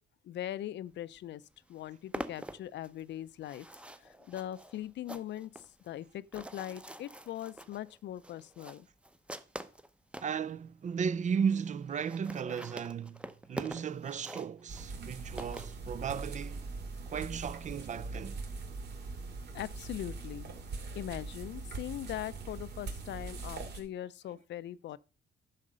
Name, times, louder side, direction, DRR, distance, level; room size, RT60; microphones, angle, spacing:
voice 1, 0.2-1.4 1.7-3.7 4.0-8.9 19.5-20.5 20.9-25.0, left 12 dB, 70° left, 0.5 m, -41 dB
sound 1, 1.2-1.3 1.5-10.4 11.0-11.1 11.3-11.4 11.6-11.7 11.9-16.3, right 1 dB, 5° right, 0.7 m, -45 dB
voice 2, 10.2-16.7 17.1-18.4, right 7 dB, 40° right, 0.5 m, -35 dB
sound 2, 14.7-23.8, right 3 dB, 65° right, 2.5 m, -42 dB
11.0 x 6.5 x 5.0 m
cardioid pair, 120°, 19 cm